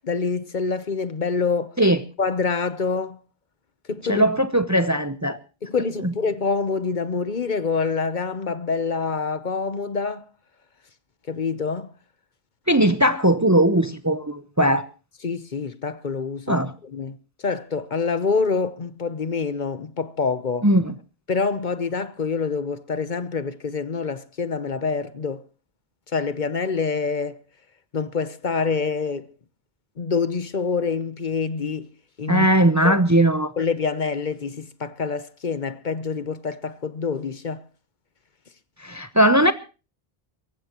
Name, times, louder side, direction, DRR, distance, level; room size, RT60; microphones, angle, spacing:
voice 1, 0.0-1.7 2.2-3.2 3.9-4.3 5.6-10.2 11.3-11.9 15.2-20.7 21.3-25.4 26.1-27.4 27.9-29.3 30.0-31.9 32.2-32.5 32.8-33.0 33.6-37.6, left 5 dB, 50° left, 1.0 m, -26 dB
voice 2, 4.1-5.4 6.0-6.1 12.7-14.8 16.5-16.7 20.6-20.9 32.3-33.5 38.8-39.5, right 1 dB, 20° right, 0.7 m, -19 dB
24.0 x 15.0 x 3.0 m
omnidirectional pair, 1.0 m